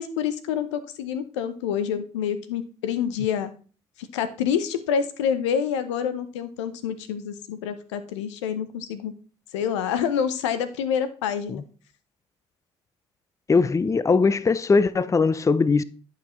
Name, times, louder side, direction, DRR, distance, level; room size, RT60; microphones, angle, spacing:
voice 1, 0.0-3.5 4.1-9.1 9.5-11.6, left 8 dB, 90° left, 0.6 m, -27 dB
voice 2, 13.5-15.8, left 4 dB, 20° left, 0.5 m, -20 dB
11.0 x 5.0 x 3.0 m
hypercardioid pair, 55°, 15 cm